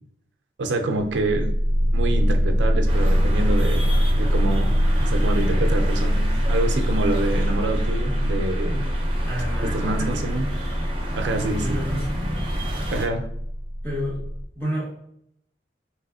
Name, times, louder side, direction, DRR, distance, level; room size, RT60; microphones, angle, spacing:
voice 1, 0.6-1.5 1.9-3.9 4.1-8.9 9.6-10.5 11.2-11.8 12.9-13.3, right 2 dB, 85° right, 4 dB, 0.5 m, -27 dB
sound 1, 1.1-14.5, equal, 85° left, 0.5 m, -23 dB
sound 2, 2.9-13.1, right 1 dB, 30° right, 0.6 m, -32 dB
voice 2, 9.3-10.2 11.4-12.1 13.8-15.0, equal, 10° left, -6 dB, 1.3 m, -30 dB
3.2 x 3.0 x 2.4 m, 0.73 s
head